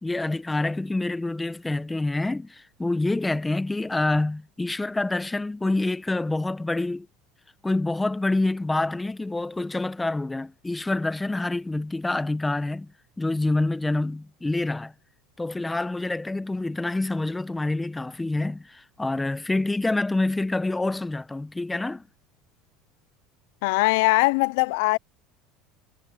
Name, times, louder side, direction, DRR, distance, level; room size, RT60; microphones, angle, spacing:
voice 1, 0.0-7.1 7.6-12.9 13.2-14.9 15.4-22.0, left 2 dB, 5° left, 0.7 m, -27 dB
voice 2, 23.6-25.0, left 24 dB, 75° left, 0.3 m, -21 dB
cardioid pair, 160°, 0 cm